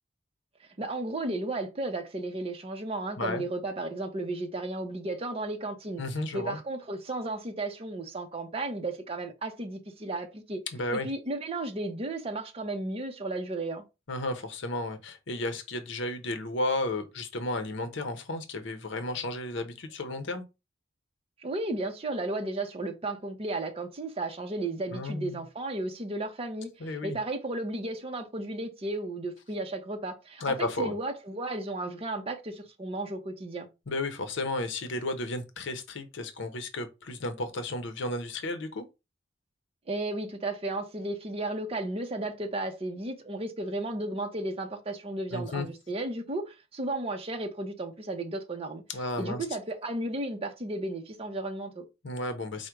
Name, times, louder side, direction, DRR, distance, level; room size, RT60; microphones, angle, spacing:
voice 1, 0.8-6.0 6.3-10.6 10.9-13.8 21.4-33.7 39.9-48.8 49.2-51.9, right 2 dB, 30° right, 0.7 m, -34 dB
voice 2, 6.0-6.6 10.7-11.1 14.1-20.4 24.9-25.4 26.8-27.2 30.4-30.9 33.9-38.8 45.3-45.7 48.9-49.5 52.0-52.7, left 2 dB, 65° left, 0.7 m, -33 dB
4.8 x 2.1 x 4.5 m
head